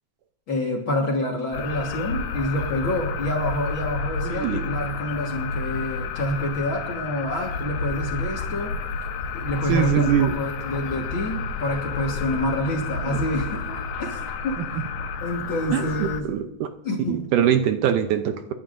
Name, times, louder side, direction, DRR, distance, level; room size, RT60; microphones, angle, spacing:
voice 1, 0.5-8.7 9.3-14.2 14.4-14.6 15.2-16.3 16.8-17.3, left 1 dB, 45° left, 0 dB, 1.7 m, -27 dB
sound 1, 1.5-16.2, left 4 dB, 85° left, 2.8 m, -30 dB
voice 2, 4.2-4.6 9.7-10.3 13.0-13.2 14.7-14.8 15.7-16.7 17.1-18.5, right 9 dB, 75° right, 7 dB, 2.1 m, -23 dB
28.5 x 11.5 x 2.6 m, 0.82 s
omnidirectional pair, 4.0 m